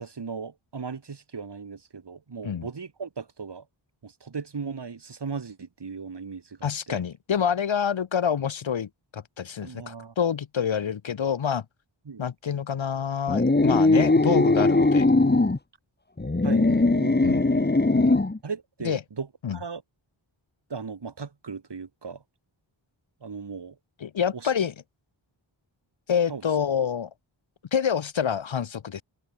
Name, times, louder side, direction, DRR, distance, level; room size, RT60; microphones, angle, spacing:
voice 1, 0.0-3.6 4.0-6.6 6.9-7.0 9.6-10.1 12.1-12.2 16.4-17.4 17.7-17.9 18.4-19.8 20.7-22.2 23.2-23.8 24.4-24.5 26.3-26.4, right 5 dB, 55° right, 2.0 m, -37 dB
voice 2, 6.6-11.6 12.2-15.1 16.7-16.8 17.2-17.6 17.9-18.2 18.8-19.0 19.4-19.6 24.0-24.7 26.1-27.1 27.7-29.0, left 7 dB, 70° left, 1.0 m, -27 dB
sound 1, 13.3-15.6 16.2-18.4, left 2 dB, 20° left, 1.5 m, -20 dB
open air
wide cardioid pair, 70°, 48 cm